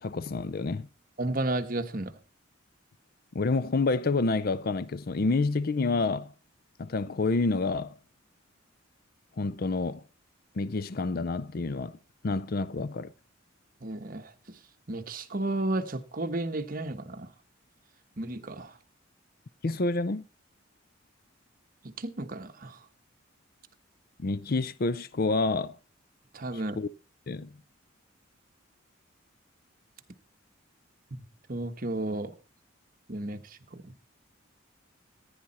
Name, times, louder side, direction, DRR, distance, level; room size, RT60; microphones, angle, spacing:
voice 1, 0.0-0.9 3.3-6.3 6.8-8.0 9.4-10.0 10.6-12.0 12.2-13.1 19.6-20.2 24.2-25.8 26.8-26.9 27.3-27.5, left 3 dB, 50° left, 0.5 m, -28 dB
voice 2, 1.2-2.2 13.8-14.6 14.9-17.3 18.2-18.8 21.8-22.8 26.3-26.8 31.1-32.3 33.1-33.9, right 2 dB, 45° right, 1.2 m, -33 dB
15.5 x 9.7 x 4.2 m
head